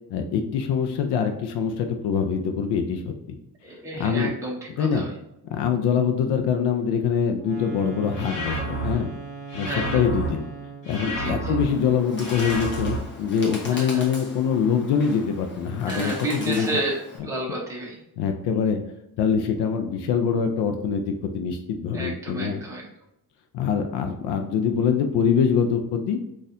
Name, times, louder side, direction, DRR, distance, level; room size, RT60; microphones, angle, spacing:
voice 1, 0.1-3.1 4.0-4.3 4.8-5.0 5.5-9.1 9.5-10.4 10.8-16.7 18.2-18.8 19.2-22.6 23.5-26.2, left 7 dB, 85° left, 5 dB, 0.5 m, -24 dB
voice 2, 3.6-5.1 9.6-10.0 11.1-11.5 13.7-14.1 15.9-16.9 17.2-18.0 21.9-22.9, right 2 dB, 10° right, -3 dB, 0.8 m, -31 dB
sound 1, 7.4-11.0, right 5 dB, 35° right, 0.9 m, -39 dB
sound 2, 8.1-8.9 9.5-10.3 10.8-11.6 12.2-13.0, right 2 dB, 50° left, 1.2 m, -30 dB
Bird, 11.6-17.2, left 2 dB, 30° left, 0.8 m, -40 dB
4.1 x 2.5 x 2.6 m, 0.84 s
cardioid pair, 135°, 39 cm